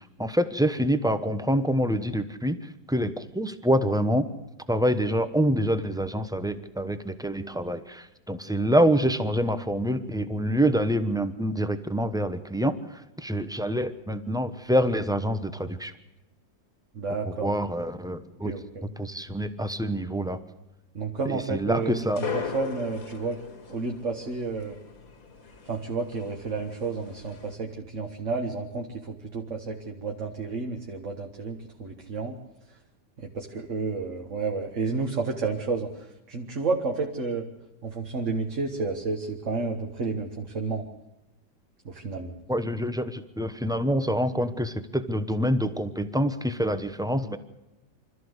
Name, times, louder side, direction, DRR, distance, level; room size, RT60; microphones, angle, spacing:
voice 1, 0.0-4.3 4.7-15.9 17.4-18.5 19.0-20.4 21.2-22.2 42.5-47.4, equal, 5° right, 10 dB, 0.6 m, -26 dB
voice 2, 16.9-17.5 18.4-18.9 21.0-23.4 23.7-24.8 25.7-32.4 33.2-37.4 37.8-40.9 41.9-42.3, right 4 dB, 40° right, 2 dB, 1.9 m, -31 dB
sound 1, 21.8-27.6, left 6 dB, 50° left, 2.3 m, -39 dB
26.0 x 14.0 x 8.1 m, 0.97 s
omnidirectional pair, 2.0 m